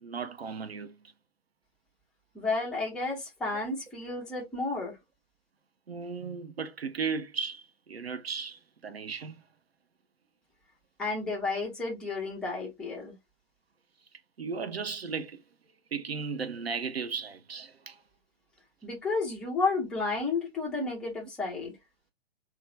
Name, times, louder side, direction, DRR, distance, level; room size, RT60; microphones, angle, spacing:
voice 1, 0.0-1.0 3.5-3.6 5.9-9.4 14.4-15.4 15.9-18.0, right 5 dB, 70° right, 0.7 m, -36 dB
voice 2, 2.3-4.9 11.0-13.1 18.8-21.7, left 3 dB, ahead, 0.4 m, -32 dB
3.8 x 2.3 x 3.0 m
figure-of-eight pair, 115°, 32 cm